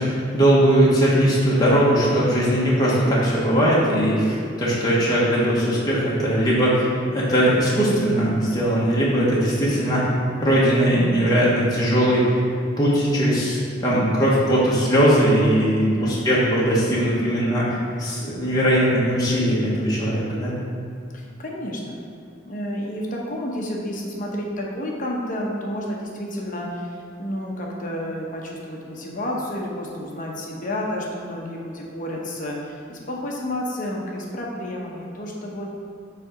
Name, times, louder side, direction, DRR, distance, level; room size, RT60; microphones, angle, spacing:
voice 1, 0.0-10.1 10.4-12.3 12.8-20.5, equal, 20° left, -7 dB, 1.2 m, -19 dB
voice 2, 21.1-22.0 22.4-35.7, left 1 dB, 45° left, -2 dB, 1.0 m, -30 dB
7.4 x 3.4 x 5.0 m, 2.5 s
head